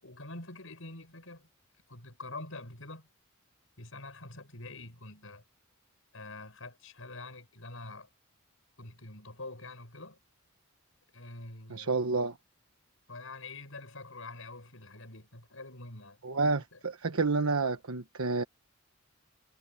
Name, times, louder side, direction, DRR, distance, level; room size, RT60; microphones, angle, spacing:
voice 1, 0.0-1.5 1.9-3.1 3.8-5.4 6.1-8.1 8.8-10.2 11.1-12.0 13.1-16.2 16.7-16.8, left 2 dB, 70° left, 6.8 m, -46 dB
voice 2, 11.7-12.3 16.2-18.4, right 3 dB, 85° right, 1.2 m, -29 dB
head